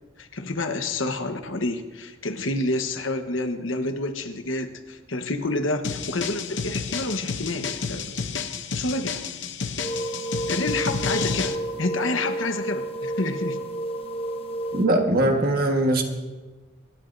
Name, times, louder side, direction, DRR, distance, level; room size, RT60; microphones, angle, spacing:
voice 1, 0.2-8.1 8.7-9.2 10.5-13.6, left 2 dB, 80° left, 6 dB, 1.2 m, -28 dB
sound 1, 5.8-11.6, left 5 dB, 60° left, 0.8 m, -30 dB
sound 2, 9.8-14.9, right 1 dB, 30° left, 1.0 m, -31 dB
voice 2, 14.7-16.0, right 1 dB, 50° right, 3 dB, 1.6 m, -21 dB
26.5 x 12.0 x 2.7 m, 1.3 s
head